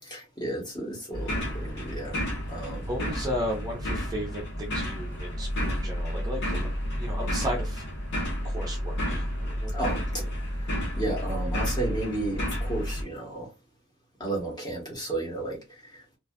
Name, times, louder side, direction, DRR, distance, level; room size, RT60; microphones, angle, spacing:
voice 1, 0.0-2.2 2.5-2.9 9.7-13.5 14.2-16.2, right 2 dB, 20° left, 1.0 m, -33 dB
sound 1, 1.1-13.0, equal, 55° left, 1.0 m, -31 dB
voice 2, 2.9-6.7 7.0-7.8 8.4-9.7, equal, 20° right, 0.6 m, -34 dB
2.5 x 2.3 x 2.3 m
head